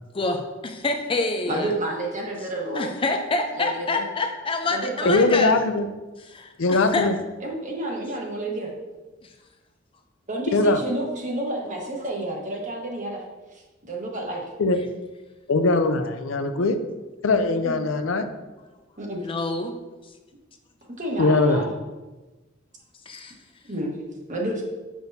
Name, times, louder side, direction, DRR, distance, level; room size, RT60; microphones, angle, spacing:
voice 1, 0.1-1.7 2.7-5.5 6.3-7.1 19.2-19.7 23.1-23.3, left 3 dB, 25° left, 5 dB, 0.5 m, -27 dB
voice 2, 1.4-3.0 3.5-4.0 4.7-5.2 7.4-8.7 10.3-13.2 13.5-14.4 16.8-16.9 17.6-17.8 19.0-19.3 20.8-21.7 23.7-24.6, right 1 dB, 40° right, -1 dB, 1.3 m, -30 dB
voice 3, 5.0-5.9 6.6-7.1 10.5-10.8 14.6-14.8 15.5-16.8 17.2-18.3 21.2-21.6, left 3 dB, 75° left, 8 dB, 0.5 m, -20 dB
6.8 x 6.1 x 2.7 m, 1.2 s
head